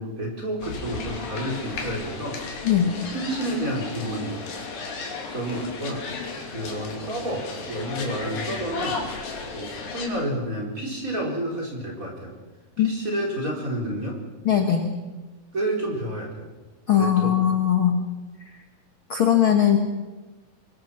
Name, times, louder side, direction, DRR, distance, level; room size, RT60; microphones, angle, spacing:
voice 1, 0.0-2.4 2.8-4.4 5.3-6.0 6.5-9.0 9.5-12.3 12.8-14.2 15.5-16.5 17.0-17.4, right 1 dB, 25° right, -1 dB, 4.4 m, -30 dB
sound 1, 0.6-10.1, left 4 dB, 75° left, 4.7 m, -34 dB
voice 2, 14.5-14.9 16.9-18.0 19.1-19.8, left 9 dB, 50° left, 4 dB, 1.8 m, -19 dB
24.0 x 22.0 x 5.8 m, 1.2 s
omnidirectional pair, 4.0 m